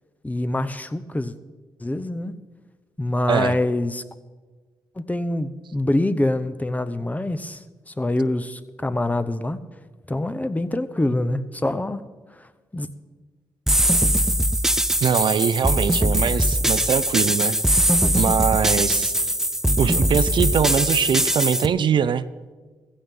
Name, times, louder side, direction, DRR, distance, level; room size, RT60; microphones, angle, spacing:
voice 1, 0.2-1.3 1.8-2.3 3.0-4.0 5.0-9.6 10.1-12.0 12.3-12.5 12.7-12.9, left 1 dB, 15° left, 12 dB, 0.8 m, -25 dB
sound 1, 13.7-21.7, right 1 dB, 5° right, 0.5 m, -21 dB
voice 2, 15.0-17.6 18.1-19.1 19.8-22.3, right 7 dB, 60° right, 14 dB, 0.5 m, -22 dB
15.5 x 15.0 x 3.8 m, 1.3 s
supercardioid pair, 55°, 9 cm